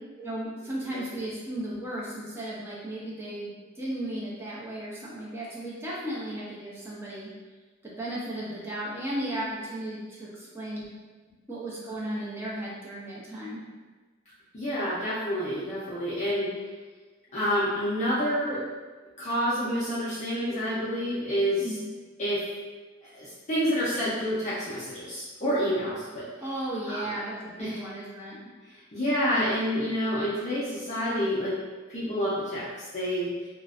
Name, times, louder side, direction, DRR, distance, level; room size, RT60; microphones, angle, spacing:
voice 1, 0.2-7.3 7.8-10.9 11.5-13.6 21.6-21.8 26.4-28.4, right 1 dB, 10° right, -6 dB, 0.5 m, -35 dB
voice 2, 14.5-16.5 17.3-18.6 19.2-21.6 22.2-22.5 23.0-26.3 26.9-27.1 27.6-27.8 28.7-31.6 31.9-33.3, equal, 35° left, -11 dB, 0.5 m, -28 dB
2.5 x 2.1 x 2.4 m, 1.4 s
head